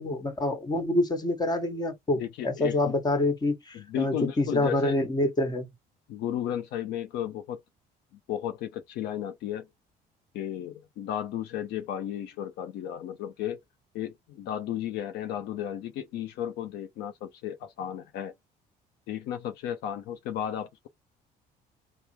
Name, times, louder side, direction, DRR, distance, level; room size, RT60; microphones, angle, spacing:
voice 1, 0.0-5.7, left 2 dB, 25° left, 1.3 m, -27 dB
voice 2, 2.1-2.9 3.7-5.0 6.1-7.6 8.3-9.7 10.3-13.6 13.9-18.3 19.1-20.9, left 10 dB, 80° left, 0.6 m, -34 dB
3.5 x 2.0 x 4.3 m
cardioid pair, 110°, 17 cm